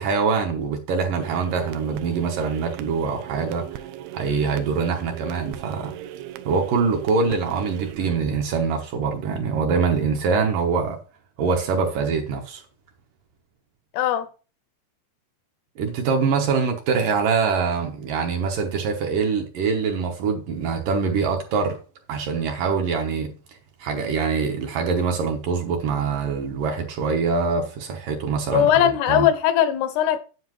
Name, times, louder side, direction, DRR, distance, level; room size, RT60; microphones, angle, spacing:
voice 1, 0.0-3.9 4.1-5.9 6.4-11.0 11.4-12.6 15.8-21.8 22.1-23.3 23.8-28.7 29.1-29.3, right 5 dB, 65° right, 2.3 m, -24 dB
sound 1, 1.2-9.2, right 12 dB, 80° right, 2.3 m, -38 dB
voice 2, 13.9-14.3 28.5-30.2, left 10 dB, 85° left, 2.9 m, -19 dB
9.6 x 8.4 x 3.1 m
omnidirectional pair, 4.7 m